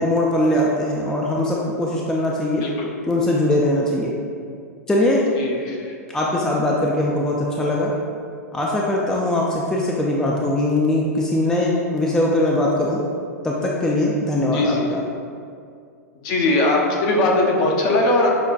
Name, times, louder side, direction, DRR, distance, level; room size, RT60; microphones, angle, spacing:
voice 1, 0.0-2.6 3.1-4.1 4.9-5.3 6.1-7.9 8.5-13.0 13.4-15.0, left 1 dB, 5° left, -3 dB, 0.3 m, -21 dB
voice 2, 5.4-5.9 14.5-14.9 16.2-18.3, left 2 dB, 45° left, 0 dB, 0.7 m, -20 dB
5.9 x 2.2 x 2.4 m, 2.3 s
hypercardioid pair, 100°, 9 cm